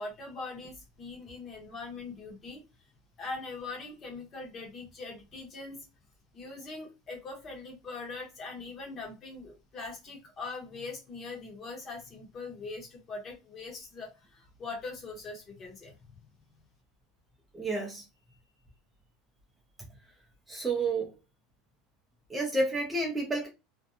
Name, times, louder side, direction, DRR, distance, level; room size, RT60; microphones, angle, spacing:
voice 1, 0.0-2.6 3.2-5.8 6.3-15.9, left 3 dB, 30° left, 1.0 m, -42 dB
voice 2, 17.5-18.0 20.5-21.1 22.3-23.5, right 2 dB, 10° right, 0.5 m, -30 dB
2.5 x 2.2 x 2.6 m
supercardioid pair, 150°, 0 cm